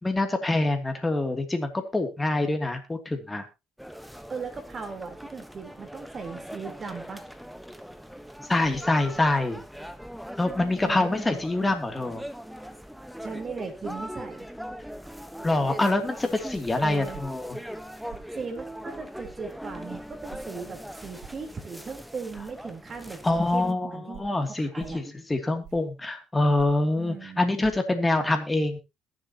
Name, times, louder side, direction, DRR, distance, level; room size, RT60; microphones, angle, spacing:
voice 1, 0.0-3.5 8.4-9.6 10.4-12.2 15.4-17.6 23.2-28.8, left 2 dB, 15° left, 5 dB, 2.8 m, -25 dB
sound 1, 3.8-23.7, equal, ahead, 1.2 m, -41 dB
voice 2, 4.3-7.2 10.9-11.2 13.2-14.5 16.8-17.2 18.0-25.0 27.0-27.5, right 5 dB, 35° right, 4 dB, 3.9 m, -38 dB
sound 2, 18.1-18.3 19.2-19.4 20.3-20.5 21.2-21.4 22.3-22.5 23.3-23.5 24.1-24.3 24.8-25.0 25.6-25.9 26.6-26.9 27.6-27.7, right 8 dB, 75° right, 2.0 m, -46 dB
21.5 x 7.7 x 3.0 m, 0.26 s
supercardioid pair, 85°, 0 cm